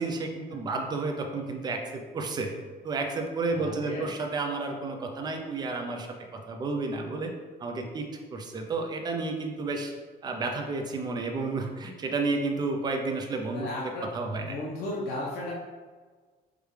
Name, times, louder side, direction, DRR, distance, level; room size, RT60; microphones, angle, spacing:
voice 1, 0.0-2.5 2.8-6.1 6.3-7.3 7.6-9.9 10.2-14.6, right 3 dB, 25° right, 3 dB, 0.4 m, -31 dB
voice 2, 3.5-4.1 13.5-15.5, left 2 dB, 85° left, -6 dB, 0.7 m, -35 dB
4.8 x 2.3 x 3.1 m, 1.4 s
cardioid pair, 170°, 17 cm